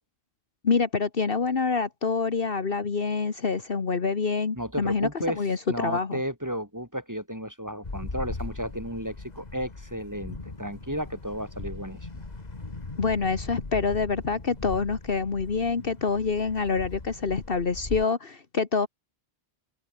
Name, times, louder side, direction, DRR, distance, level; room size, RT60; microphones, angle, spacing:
voice 1, 0.6-5.1 5.4-6.2 13.0-18.9, left 4 dB, 60° left, 1.6 m, -26 dB
voice 2, 4.6-5.4 5.7-12.2, equal, 15° right, 8.0 m, -33 dB
sound 1, 7.8-18.0, left 3 dB, 40° left, 2.2 m, -39 dB
open air
omnidirectional pair, 1.1 m